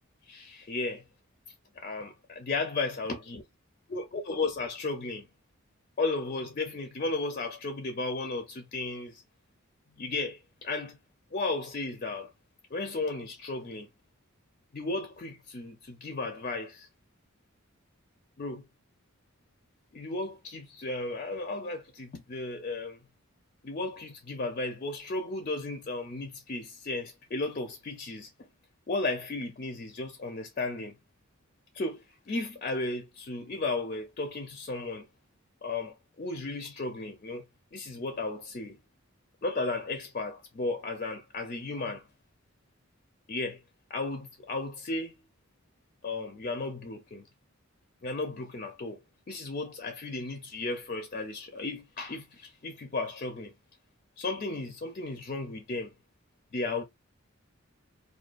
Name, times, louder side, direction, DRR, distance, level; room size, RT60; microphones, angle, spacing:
voice 1, 0.2-1.0 1.8-3.4 3.9-5.3 6.0-9.2 10.0-11.0 11.3-12.3 12.7-13.9 14.7-16.9 18.4-18.7 19.9-23.0 23.6-28.5 28.9-31.0 31.7-35.1 35.6-37.4 37.7-38.8 39.4-42.1 43.3-43.6 43.9-45.1 46.0-47.3 48.0-49.0 49.3-53.5 54.2-55.9 56.5-56.8, left 3 dB, 40° left, 0.4 m, -34 dB
2.4 x 2.3 x 2.3 m
head